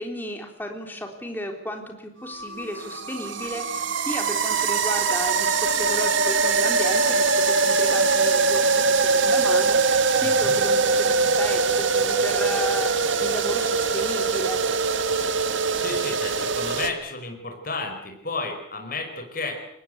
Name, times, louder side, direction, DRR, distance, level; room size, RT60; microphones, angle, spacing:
voice 1, 0.0-14.6, equal, 10° left, 3 dB, 3.6 m, -34 dB
sound 1, 2.2-16.9, right 4 dB, 80° right, 1.7 m, -22 dB
voice 2, 10.2-10.7 15.8-19.6, left 3 dB, 45° left, 4 dB, 5.2 m, -32 dB
23.5 x 19.5 x 8.2 m, 0.82 s
head